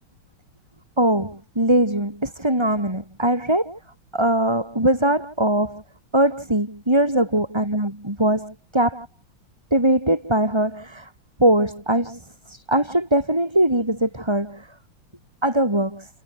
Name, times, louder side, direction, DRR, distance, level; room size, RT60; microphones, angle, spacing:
voice 1, 1.0-3.8 4.1-5.8 6.1-9.1 9.7-11.1 11.4-14.7 15.4-16.1, right 1 dB, 10° right, 5.2 m, -21 dB
omnidirectional pair, 2.3 m